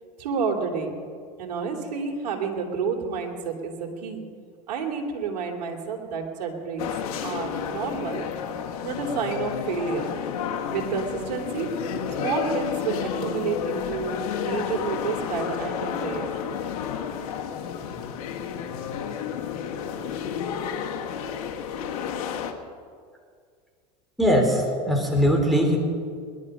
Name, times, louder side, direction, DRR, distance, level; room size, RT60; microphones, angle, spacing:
voice 1, 0.2-1.0 1.4-4.2 4.7-6.8 7.2-8.3 8.8-10.1 10.7-11.7 12.2-16.3, right 5 dB, 80° right, 2 dB, 2.9 m, -30 dB
sound 1, 6.8-22.5, left 8 dB, 70° left, 1.7 m, -31 dB
voice 2, 24.2-25.8, equal, ahead, -1 dB, 4.1 m, -21 dB
20.5 x 12.0 x 5.4 m, 2.1 s
hypercardioid pair, 100°, 21 cm